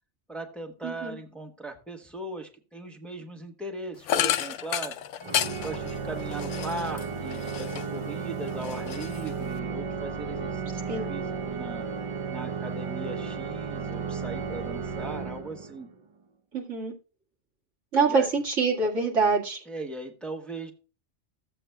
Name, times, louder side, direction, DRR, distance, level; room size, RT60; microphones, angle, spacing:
voice 1, 0.3-4.9 5.6-11.8 12.3-15.9 18.1-18.3 19.7-20.7, right 2 dB, ahead, 3 dB, 1.1 m, -38 dB
voice 2, 0.8-1.1 10.9-11.1 16.5-16.9 17.9-19.6, right 4 dB, 80° right, -1 dB, 2.2 m, -25 dB
sound 1, 4.1-8.0 8.4-9.6, left 10 dB, 80° left, 0.9 m, -31 dB
Organ, 5.2-16.0, right 5 dB, 35° right, 0.5 m, -34 dB
14.0 x 7.8 x 2.2 m, 0.34 s
omnidirectional pair, 1.2 m